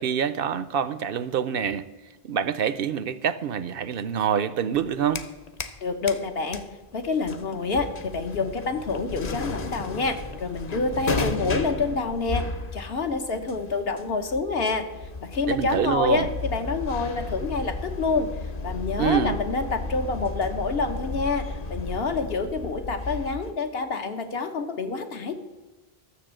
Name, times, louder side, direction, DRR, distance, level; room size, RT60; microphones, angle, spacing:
voice 1, 0.0-1.9 2.2-5.2 15.5-16.3 19.0-19.4, right 8 dB, 70° right, 0.8 m, -26 dB
sound 1, 4.7-5.8 6.1-23.5, left 3 dB, 45° left, 0.8 m, -34 dB
voice 2, 5.8-6.6 6.9-12.4 12.7-14.8 15.2-18.3 18.6-25.3, left 4 dB, 70° left, 1.3 m, -27 dB
13.0 x 7.0 x 7.5 m
omnidirectional pair, 1.0 m